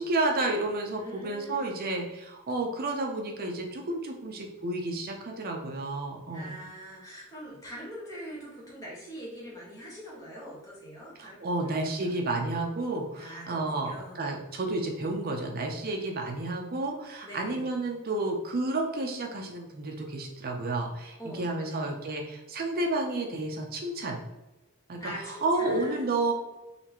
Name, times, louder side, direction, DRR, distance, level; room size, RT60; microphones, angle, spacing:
voice 1, 0.0-6.5 11.2-24.2 24.9-25.1 25.4-26.3, right 2 dB, 40° right, 2 dB, 0.6 m, -31 dB
voice 2, 0.9-1.7 6.3-12.1 13.1-14.2 17.2-17.8 21.2-21.9 25.0-26.1, equal, 15° left, -6 dB, 1.4 m, -43 dB
4.1 x 3.2 x 3.0 m, 1.0 s
head